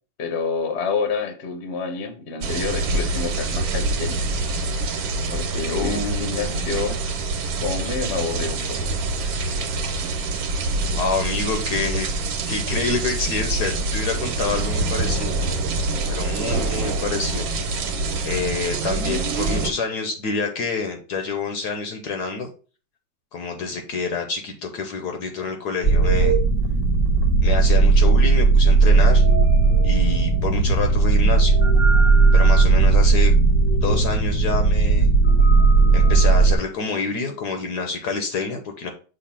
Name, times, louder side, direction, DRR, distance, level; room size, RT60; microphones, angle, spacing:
voice 1, 0.2-4.3 5.3-7.0 7.6-8.9 18.1-18.3, left 5 dB, 45° left, 6 dB, 1.1 m, -28 dB
sound 1, 2.4-19.7, right 3 dB, 90° right, 1.7 m, -25 dB
voice 2, 5.7-6.8 10.9-12.1 12.5-15.4 16.1-17.5 18.2-22.5 23.3-26.4 27.4-29.2 29.8-31.6 32.3-33.3 33.7-35.1 35.9-38.9, left 4 dB, 65° left, 5 dB, 1.3 m, -27 dB
Spaceship Engine - noise + minor beep, 25.8-36.5, right 4 dB, 25° left, 0.6 m, -16 dB
6.7 x 2.7 x 5.7 m, 0.37 s
omnidirectional pair, 2.1 m